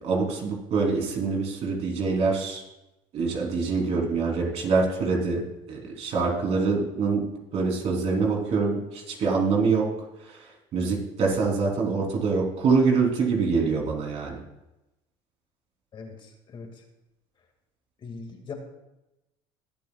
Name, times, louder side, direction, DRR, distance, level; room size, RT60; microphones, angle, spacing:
voice 1, 0.0-2.6 3.1-5.4 5.7-7.2 7.5-9.9 10.2-14.4, right 4 dB, 55° right, 0 dB, 3.5 m, -25 dB
voice 2, 15.9-16.7 18.0-18.5, left 5 dB, 40° left, 3 dB, 2.1 m, -40 dB
21.5 x 8.3 x 2.4 m, 0.95 s
supercardioid pair, 105°, 13 cm